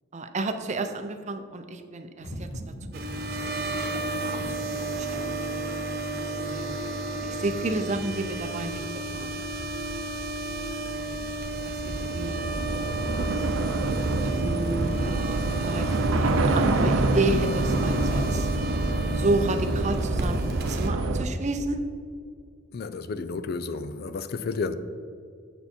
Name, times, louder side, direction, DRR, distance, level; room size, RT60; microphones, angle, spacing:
voice 1, 0.1-2.5 2.9-5.6 6.5-8.8 9.1-9.3 10.9-11.3 11.6-12.5 14.2-18.5 19.1-21.8, right 2 dB, 35° right, 0.5 m, -32 dB
sound 1, 2.2-9.6, equal, 70° left, 1.3 m, -42 dB
sound 2, 2.9-20.9, right 2 dB, 50° right, 1.0 m, -33 dB
Train / Subway metro underground, 8.3-21.3, right 2 dB, 90° right, 0.6 m, -27 dB
voice 2, 22.7-24.7, left 4 dB, 50° left, 0.4 m, -31 dB
6.9 x 6.7 x 4.3 m
head